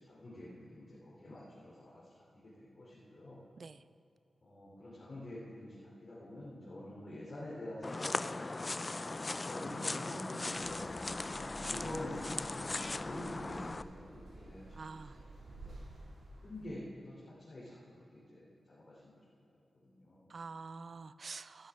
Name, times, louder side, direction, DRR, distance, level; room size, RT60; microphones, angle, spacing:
voice 1, 0.0-3.4 4.4-5.7 6.0-10.8 11.4-15.0 15.4-15.7 16.4-19.2 19.7-20.3, left 1 dB, 55° left, -8 dB, 3.1 m, -47 dB
sound 1, 7.8-13.8, left 2 dB, 30° left, 0.3 m, -38 dB
sound 2, 10.5-16.7, right 2 dB, 90° right, 2.2 m, -52 dB
voice 2, 14.8-15.2 20.3-21.7, right 4 dB, 55° right, 14 dB, 0.4 m, -46 dB
17.0 x 11.5 x 3.6 m, 2.4 s
cardioid pair, 75°, 0 cm